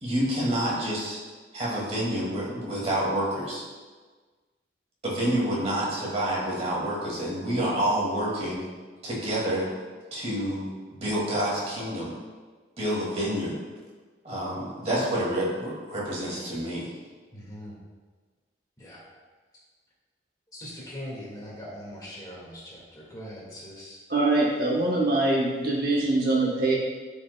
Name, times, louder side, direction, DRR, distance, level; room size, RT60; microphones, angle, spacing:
voice 1, 0.0-1.2 1.5-3.6 5.0-8.7 9.0-9.7 10.1-10.7 11.0-12.1 12.8-13.6 14.2-16.9, right 1 dB, 35° right, -5 dB, 2.1 m, -28 dB
voice 2, 17.3-17.8 18.8-19.0 20.5-24.0, equal, 20° left, -5 dB, 1.9 m, -41 dB
voice 3, 24.1-26.7, right 2 dB, 55° right, -3 dB, 1.0 m, -23 dB
12.5 x 5.4 x 2.2 m, 1.4 s
head